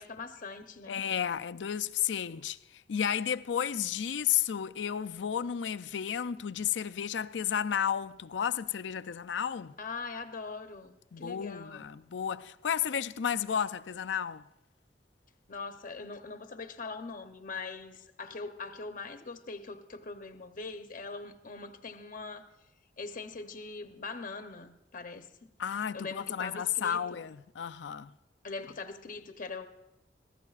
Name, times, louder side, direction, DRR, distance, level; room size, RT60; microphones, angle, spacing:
voice 1, 0.0-1.0 9.8-11.9 15.5-22.5 23.0-25.5 25.9-27.0 28.4-29.7, left 4 dB, 50° left, 0.8 m, -42 dB
voice 2, 0.9-9.7 11.1-14.4 25.6-28.1, left 8 dB, 85° left, 0.4 m, -32 dB
26.0 x 15.0 x 2.4 m
head